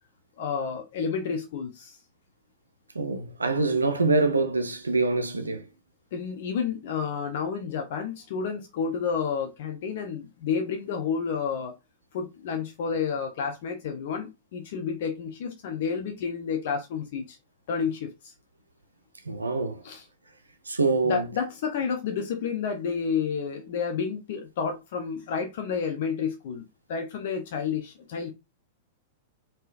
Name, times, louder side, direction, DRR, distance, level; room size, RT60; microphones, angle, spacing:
voice 1, 0.4-2.0 6.1-11.7 12.1-17.4 17.7-18.3 19.8-20.1 21.0-26.6 26.9-28.3, left 6 dB, 55° left, 0.6 m, -30 dB
voice 2, 3.0-5.6 19.3-19.8 20.7-21.3, right 3 dB, 80° right, 0.4 m, -25 dB
3.7 x 2.6 x 2.4 m
figure-of-eight pair, 100°, 0 cm